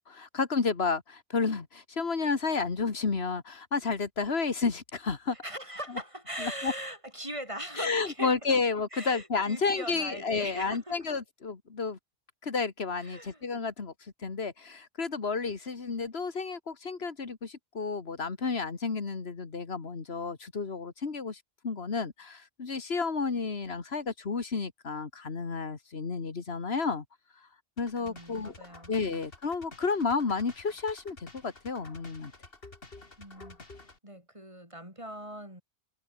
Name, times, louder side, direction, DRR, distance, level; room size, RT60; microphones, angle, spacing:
voice 1, 0.0-5.4 6.4-6.7 7.8-12.0 12.4-27.0 27.3-27.5 27.8-28.5 28.9-32.3, left 4 dB, 85° left, 2.1 m, -31 dB
voice 2, 5.3-8.6 8.9-11.0 13.0-13.4 28.0-29.2 33.2-35.6, right 1 dB, 30° right, 8.1 m, -41 dB
sound 1, 27.8-34.0, left 3 dB, 65° left, 3.2 m, -51 dB
omnidirectional pair, 1.0 m